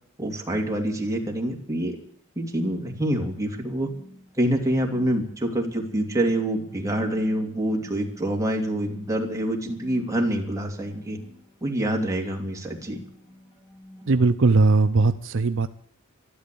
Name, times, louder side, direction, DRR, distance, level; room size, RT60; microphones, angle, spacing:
voice 1, 0.2-2.0 2.4-3.9 4.4-11.2 11.6-13.0, right 1 dB, 15° right, 0 dB, 2.8 m, -26 dB
sound 1, 2.8-14.2, left 1 dB, 25° left, 7.0 m, -48 dB
voice 2, 14.1-15.7, right 3 dB, 60° right, 10 dB, 0.6 m, -19 dB
12.5 x 12.5 x 8.5 m, 0.63 s
head